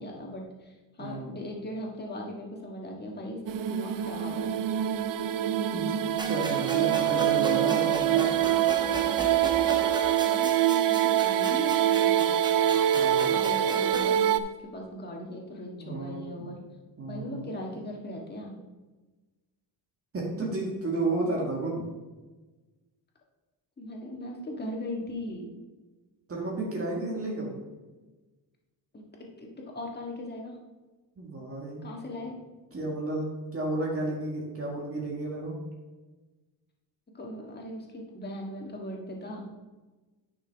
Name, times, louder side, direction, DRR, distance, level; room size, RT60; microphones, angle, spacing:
voice 1, 0.0-4.6 10.2-12.4 13.3-16.6 17.0-18.6 23.8-25.5 28.9-29.0 29.4-30.6 31.8-32.3 37.1-39.5, left 1 dB, 25° left, -1 dB, 1.7 m, -39 dB
voice 2, 1.0-1.3 5.7-8.3 12.6-13.3 15.8-16.5 17.0-17.5 20.1-21.9 26.3-27.6 31.2-31.9 32.7-35.6, right 2 dB, 30° right, -2 dB, 1.7 m, -32 dB
sound 1, 3.5-14.4, right 11 dB, 50° right, 0.5 m, -25 dB
sound 2, 6.2-14.2, right 2 dB, 10° right, 0.8 m, -36 dB
9.9 x 6.0 x 3.5 m, 1.2 s
cardioid pair, 120°, 42 cm